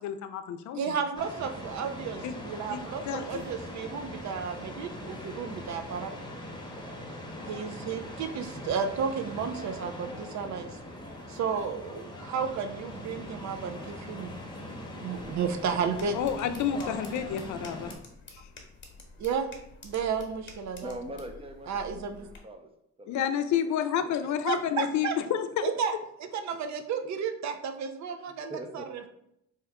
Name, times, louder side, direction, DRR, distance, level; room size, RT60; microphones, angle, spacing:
voice 1, 0.0-1.0 2.2-2.3 2.7-3.4 16.1-17.9 18.3-18.4 23.1-25.7, left 9 dB, 70° left, 8 dB, 0.5 m, -30 dB
voice 2, 0.7-6.1 7.5-10.8 11.3-14.3 15.0-16.2 19.2-19.5 19.8-21.0 21.7-22.3 24.5-25.2 25.6-25.9 26.3-29.1, right 6 dB, 65° right, 7 dB, 0.6 m, -32 dB
sound 1, 1.1-17.9, left 1 dB, 15° left, 0.9 m, -41 dB
sound 2, 15.1-22.4, left 4 dB, 40° left, 1.0 m, -50 dB
voice 3, 20.8-22.7 23.0-23.7 24.0-24.6 28.1-29.1, right 1 dB, 20° right, 6 dB, 0.6 m, -43 dB
3.3 x 2.9 x 3.5 m, 0.77 s
cardioid pair, 90°, 30 cm